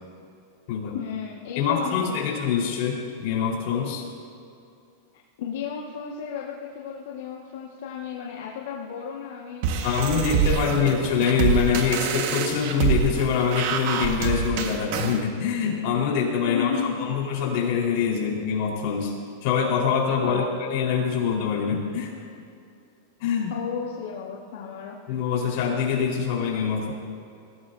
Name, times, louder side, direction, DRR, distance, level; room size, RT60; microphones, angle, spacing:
voice 1, 0.9-2.7 5.1-10.9 16.5-17.1 20.2-20.4 23.5-25.0, left 7 dB, 75° left, -3 dB, 1.8 m, -34 dB
voice 2, 1.5-4.0 9.8-19.1 19.4-22.1 23.2-23.5 25.1-26.9, left 6 dB, 60° left, -2 dB, 4.6 m, -24 dB
sound 1, 9.6-15.2, right 7 dB, 60° right, 1.7 m, -26 dB
21.5 x 17.5 x 2.8 m, 2.5 s
supercardioid pair, 130°, 0 cm